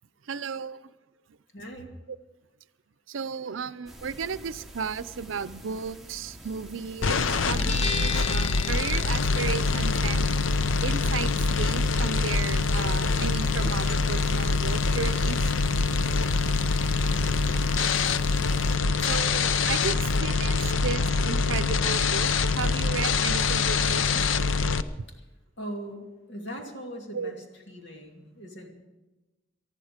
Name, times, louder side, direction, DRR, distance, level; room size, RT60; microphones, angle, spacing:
voice 1, 0.3-0.9 3.1-10.3 10.8-15.5 18.5-18.6 19.0-24.3 27.1-27.3, right 6 dB, 85° right, 16 dB, 0.6 m, -34 dB
voice 2, 1.5-1.9 17.1-17.6 25.1-25.2 25.6-28.7, equal, 60° left, 2 dB, 2.5 m, -40 dB
sound 1, 3.9-18.8, right 1 dB, ahead, 1.2 m, -47 dB
sound 2, 7.0-24.8, left 4 dB, 85° left, 0.6 m, -25 dB
Guitar, 7.2-24.4, left 3 dB, 35° left, 0.8 m, -41 dB
19.5 x 13.0 x 5.1 m, 1.1 s
head